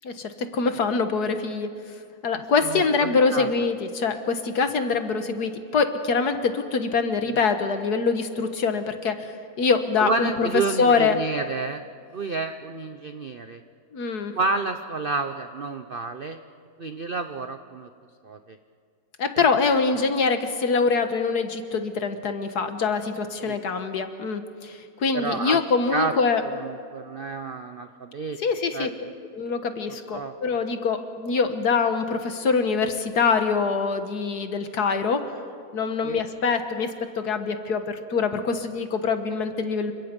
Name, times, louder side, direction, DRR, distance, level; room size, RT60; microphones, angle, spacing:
voice 1, 0.0-1.7 2.2-11.2 13.9-14.3 19.2-26.4 28.4-28.9 29.3-35.3 35.7-39.9, left 5 dB, 55° left, 8 dB, 1.8 m, -24 dB
voice 2, 2.6-3.5 7.2-7.4 10.0-11.8 12.1-13.6 14.3-16.4 16.8-17.9 18.2-18.6 19.4-19.5 23.4-23.6 25.1-25.6 25.9-26.1 26.6-28.4 28.7-28.9 30.1-30.3 36.0-36.2, right 4 dB, 65° right, 8 dB, 0.5 m, -30 dB
29.0 x 25.5 x 5.3 m, 2.3 s
omnidirectional pair, 2.1 m